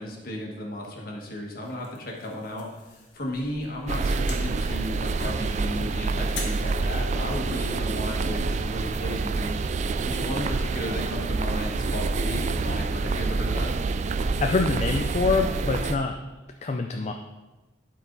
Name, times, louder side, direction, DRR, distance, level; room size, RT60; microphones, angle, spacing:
voice 1, 0.0-2.7 3.1-9.6 10.0-13.7, left 1 dB, 55° left, -1 dB, 1.6 m, -34 dB
sound 1, 1.6-8.1, left 3 dB, 75° left, 1.6 m, -45 dB
sound 2, 3.9-16.0, right 3 dB, 40° right, 0.3 m, -27 dB
voice 2, 14.4-16.2 16.6-17.1, left 4 dB, 40° left, 4 dB, 0.4 m, -25 dB
12.0 x 4.7 x 3.9 m, 1.1 s
head